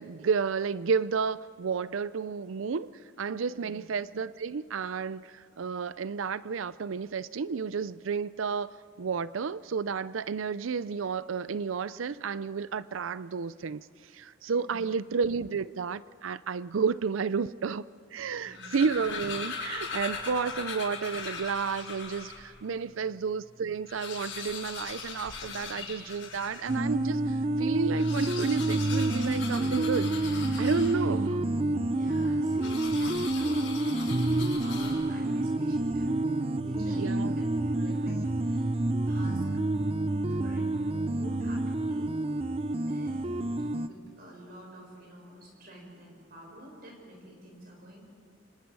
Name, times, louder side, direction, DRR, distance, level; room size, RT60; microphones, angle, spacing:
voice 1, 0.0-13.8 14.1-17.8 18.1-30.2 30.6-31.4 36.8-37.3, right 5 dB, 85° right, 17 dB, 0.5 m, -31 dB
voice 2, 14.5-15.0 18.4-18.7 22.8-22.9 31.9-36.3 36.6-37.5 37.8-39.5 40.3-40.7 41.2-42.1 42.9-43.5 43.8-48.0, right 1 dB, 45° right, 0 dB, 6.3 m, -49 dB
sound 1, 18.3-22.5 23.0-23.1 23.3-23.4 23.8-26.9 27.8-31.3 32.6-35.3, left 5 dB, 75° left, 5.6 m, -40 dB
sound 2, 26.7-43.9, right 2 dB, 30° right, 0.5 m, -28 dB
30.0 x 25.5 x 4.8 m, 2.3 s
head